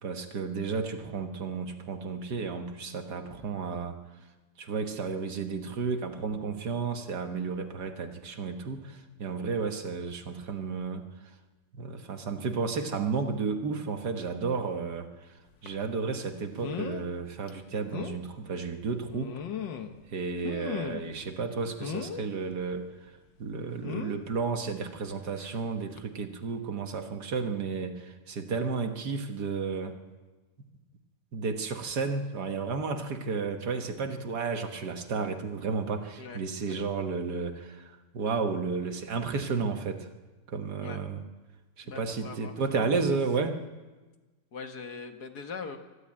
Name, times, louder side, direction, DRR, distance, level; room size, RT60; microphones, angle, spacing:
voice 1, 0.0-4.0 4.6-11.3 11.8-19.4 20.1-23.1 23.4-30.0 31.3-40.1 40.5-41.2 41.8-43.6, right 5 dB, 65° right, 6 dB, 1.9 m, -32 dB
sound 1, 15.7-15.8 16.6-17.1 17.5-17.6 17.9-18.2 19.1-20.0 20.4-21.2 21.8-22.2 23.8-24.2 25.4-25.6 26.0-26.1, left 7 dB, 80° left, 1.9 m, -36 dB
voice 2, 36.2-36.8 40.8-41.0 41.8-42.9 44.5-45.8, left 5 dB, 60° left, 6 dB, 1.9 m, -41 dB
24.5 x 12.5 x 8.7 m, 1.2 s
omnidirectional pair, 2.0 m